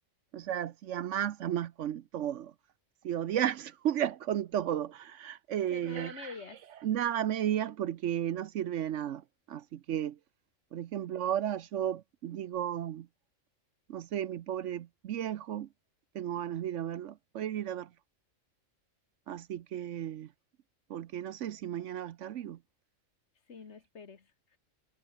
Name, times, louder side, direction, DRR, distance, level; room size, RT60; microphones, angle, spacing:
voice 1, 0.3-2.5 3.0-6.3 6.8-10.2 10.7-13.1 13.9-15.7 16.1-17.9 19.3-20.3 20.9-22.6, right 10 dB, 70° right, 1.0 m, -34 dB
voice 2, 5.7-6.6 23.5-24.6, left 5 dB, 60° left, 1.8 m, -47 dB
omnidirectional pair, 1.4 m